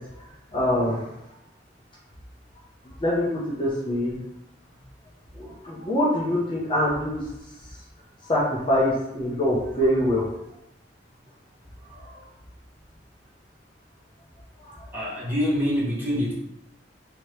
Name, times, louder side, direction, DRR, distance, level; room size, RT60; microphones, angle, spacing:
voice 1, 0.5-1.0 3.0-4.2 5.4-7.2 8.3-10.2, left 1 dB, 30° left, -6 dB, 0.8 m, -24 dB
voice 2, 11.9-12.3 14.9-16.3, equal, 10° right, -9 dB, 1.3 m, -26 dB
3.4 x 2.8 x 3.2 m, 0.87 s
head